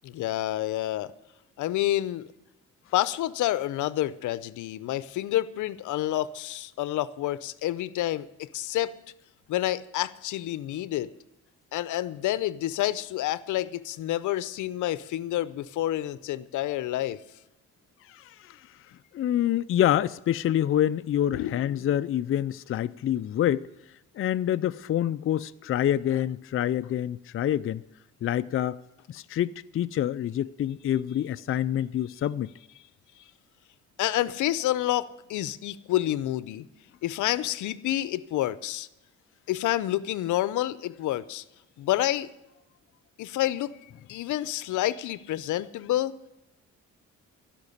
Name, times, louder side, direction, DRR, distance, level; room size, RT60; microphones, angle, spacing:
voice 1, 0.0-1.1 1.6-2.3 2.9-9.0 9.5-11.1 11.7-17.2 21.3-21.6 34.0-36.7 37.0-38.9 39.5-41.4 41.8-42.3 43.2-43.8 44.1-46.1, left 14 dB, 80° left, 0.7 m, -28 dB
voice 2, 18.1-18.6 19.1-23.7 24.1-27.8 28.2-28.8 29.1-32.5, left 11 dB, 45° left, 0.4 m, -27 dB
16.0 x 6.0 x 9.9 m
cardioid pair, 90°, 30 cm